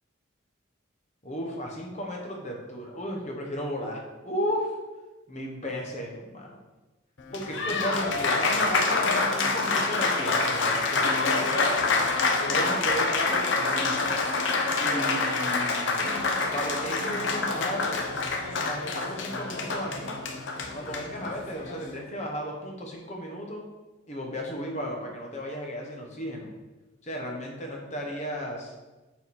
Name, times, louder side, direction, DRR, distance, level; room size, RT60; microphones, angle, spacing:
voice 1, 1.2-4.7 5.3-6.6 7.3-11.3 12.5-14.2 14.8-16.0 16.5-17.9 18.6-20.2 20.7-23.6 24.1-26.5 27.0-28.7, equal, 35° left, 0 dB, 1.1 m, -34 dB
Applause, 7.2-21.9, left 3 dB, 65° left, 0.8 m, -27 dB
6.8 x 4.0 x 4.2 m, 1.1 s
head